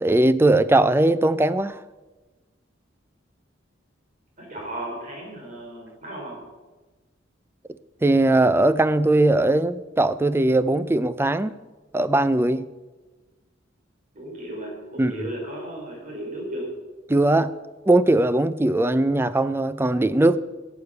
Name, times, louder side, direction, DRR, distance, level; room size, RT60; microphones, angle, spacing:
voice 1, 0.0-1.8 8.0-11.5 11.9-12.7 15.0-15.1 17.1-17.5 17.9-20.4, right 2 dB, 10° right, 15 dB, 0.4 m, -19 dB
voice 2, 4.4-6.4 14.1-16.7, right 1 dB, 45° right, -2 dB, 4.9 m, -35 dB
11.5 x 8.2 x 6.9 m, 1.2 s
head